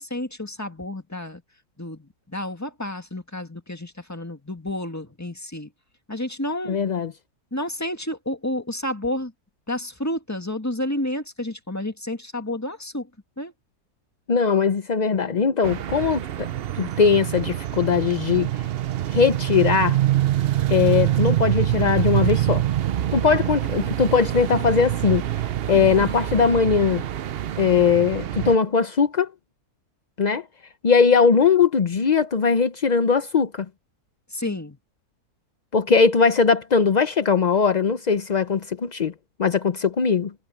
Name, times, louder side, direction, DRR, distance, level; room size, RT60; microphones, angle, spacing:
voice 1, 0.0-1.4 1.8-5.7 6.1-6.8 7.5-9.3 9.7-13.1 13.4-13.5 34.3-34.8, left 1 dB, 10° left, 1.9 m, -30 dB
voice 2, 6.7-7.1 14.3-18.7 19.1-20.0 20.7-22.7 23.1-27.0 27.6-29.3 30.2-30.5 30.8-33.7 35.7-39.1 39.4-40.3, left 5 dB, 50° left, 0.5 m, -20 dB
sound 1, 15.6-28.6, right 13 dB, 70° right, 0.5 m, -25 dB
omnidirectional pair, 1.7 m